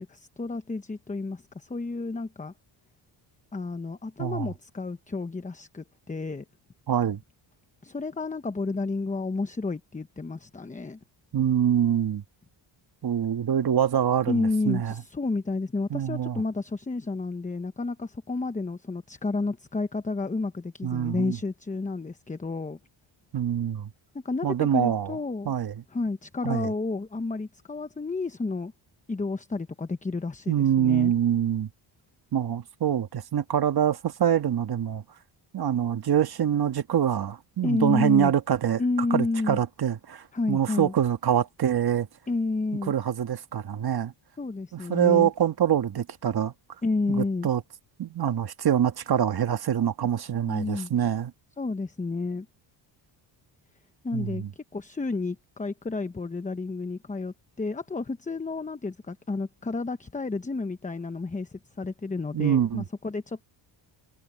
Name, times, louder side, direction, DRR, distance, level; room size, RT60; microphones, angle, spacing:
voice 1, 0.0-2.5 3.5-6.4 7.8-11.0 14.3-22.8 24.2-25.5 25.9-28.7 29.1-31.1 37.6-38.3 38.8-39.6 40.3-40.9 42.3-42.9 44.4-45.3 46.8-47.5 50.4-50.9 51.6-52.5 54.0-54.4 54.7-63.4, left 3 dB, 15° left, 1.0 m, -31 dB
voice 2, 4.2-4.5 6.9-7.2 11.3-12.2 13.0-14.9 15.9-16.4 20.8-21.4 23.3-23.9 24.4-25.2 25.4-25.8 26.4-26.7 30.5-31.7 32.3-35.0 35.5-38.8 39.1-42.1 42.9-44.1 44.7-46.5 47.1-47.6 48.0-51.3 54.1-54.5 62.3-62.8, right 9 dB, 50° right, 1.6 m, -25 dB
cardioid pair, 105°, 50 cm